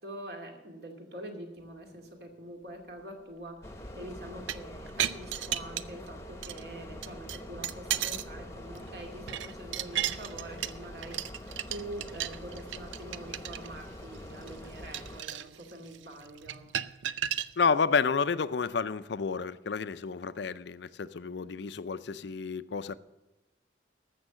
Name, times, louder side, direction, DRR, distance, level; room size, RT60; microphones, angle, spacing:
voice 1, 0.0-11.2 11.7-16.6, right 1 dB, 55° right, 2.4 m, -45 dB
sound 1, 3.6-15.2, left 1 dB, 15° left, 0.9 m, -45 dB
sound 2, 4.3-6.1 6.4-6.6 7.0-8.3 8.7-17.5, right 11 dB, 85° right, 0.5 m, -35 dB
voice 2, 17.6-23.0, left 5 dB, 65° left, 0.5 m, -30 dB
14.5 x 6.5 x 7.6 m
head